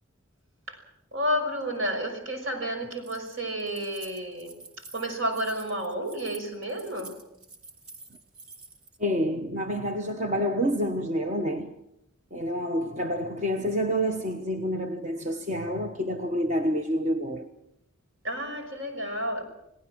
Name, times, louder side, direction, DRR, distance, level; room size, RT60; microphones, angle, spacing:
voice 1, 1.1-7.2 18.2-19.4, equal, 70° right, 5.8 m, -31 dB
Keys jangling, 2.9-9.0, right 3 dB, 85° right, 3.0 m, -48 dB
voice 2, 9.0-11.7 12.3-17.5, equal, 35° right, 1.1 m, -28 dB
30.0 x 18.5 x 6.2 m
head